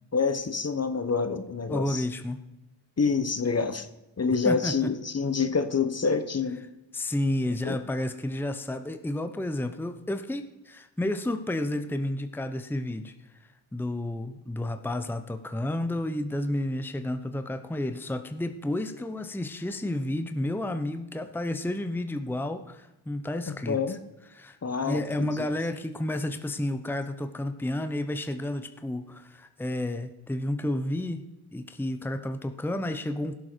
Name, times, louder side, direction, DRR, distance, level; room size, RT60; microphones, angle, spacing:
voice 1, 0.1-2.0 3.0-3.9 4.2-6.6 7.6-7.8 23.7-24.0 24.6-25.0, left 5 dB, 30° left, 11 dB, 1.0 m, -27 dB
voice 2, 1.7-2.4 4.4-4.9 6.9-13.1 13.4-24.0 24.3-31.3 31.5-33.4, left 1 dB, 5° left, 9 dB, 0.9 m, -31 dB
16.5 x 7.3 x 4.5 m, 0.96 s
supercardioid pair, 45°, 48 cm